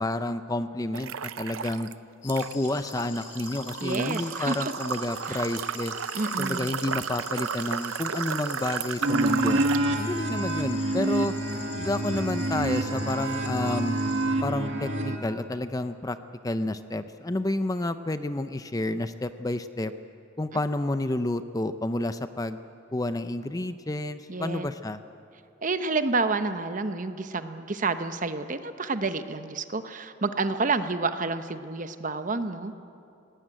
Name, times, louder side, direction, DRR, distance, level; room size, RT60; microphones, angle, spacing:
voice 1, 0.0-1.9 2.2-6.0 6.4-9.6 10.0-11.3 11.7-14.0 14.4-16.2 16.4-19.9 20.4-22.6 22.9-25.0, left 1 dB, 20° left, 10 dB, 0.5 m, -30 dB
sound 1, 0.9-1.9 2.3-9.9, right 8 dB, 90° right, 0.6 m, -33 dB
sound 2, 2.2-14.2, left 5 dB, 65° left, 5.3 m, -45 dB
voice 2, 3.8-4.7 5.3-5.5 6.1-6.8 24.3-24.7 25.6-32.7, right 3 dB, 40° right, 10 dB, 0.9 m, -29 dB
sound 3, 9.0-15.2, right 1 dB, 70° right, 2.1 m, -27 dB
18.5 x 18.0 x 9.2 m, 2.6 s
head